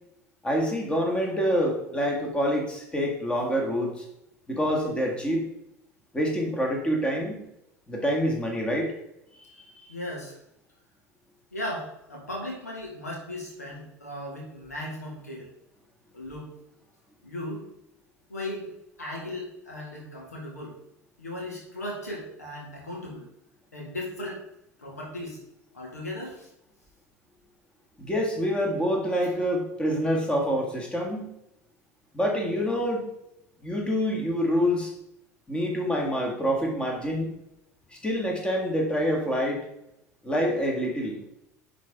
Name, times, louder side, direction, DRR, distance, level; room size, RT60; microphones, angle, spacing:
voice 1, 0.4-4.1 4.5-5.4 6.1-7.4 7.9-8.9 9.6-9.9 28.0-31.3 32.1-33.1 33.6-34.9 35.5-37.3 38.0-39.6 40.2-41.2, equal, 10° left, 0 dB, 1.9 m, -26 dB
voice 2, 9.9-10.3 11.5-15.5 16.1-16.5 17.2-17.7 18.3-20.7 21.2-23.3 23.7-24.5 24.8-25.4 25.7-26.5, left 1 dB, 80° left, -2 dB, 2.1 m, -37 dB
10.5 x 4.1 x 3.6 m, 0.81 s
figure-of-eight pair, 75°, 8 cm